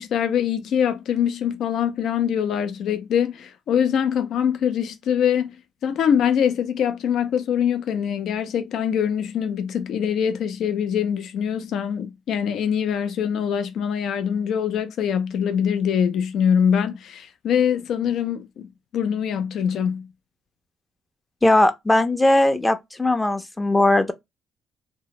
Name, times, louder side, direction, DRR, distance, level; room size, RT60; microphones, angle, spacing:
voice 1, 0.0-5.5 5.8-18.7 18.9-20.1, left 8 dB, 75° left, 0.4 m, -23 dB
voice 2, 21.4-24.1, left 1 dB, 15° left, 0.5 m, -19 dB
2.6 x 2.0 x 2.9 m
cardioid pair, 90°, 0 cm